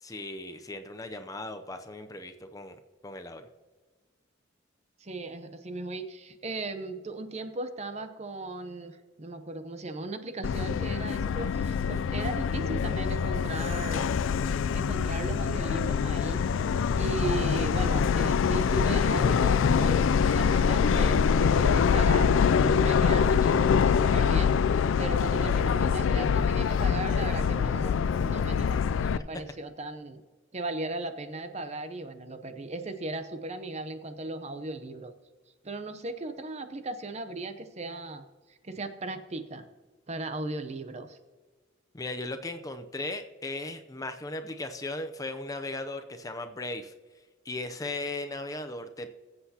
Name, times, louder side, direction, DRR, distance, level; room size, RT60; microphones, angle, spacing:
voice 1, 0.0-2.8 3.0-3.5 41.9-46.9 47.4-49.1, left 2 dB, 20° left, 7 dB, 0.5 m, -37 dB
voice 2, 5.0-14.1 14.7-16.4 17.0-30.2 30.5-35.1 35.6-39.6 40.1-41.2, right 2 dB, 35° right, 9 dB, 0.7 m, -37 dB
Subway metro underground, 10.4-29.2, left 6 dB, 80° left, 0.4 m, -24 dB
21.0 x 7.9 x 2.8 m, 1.4 s
head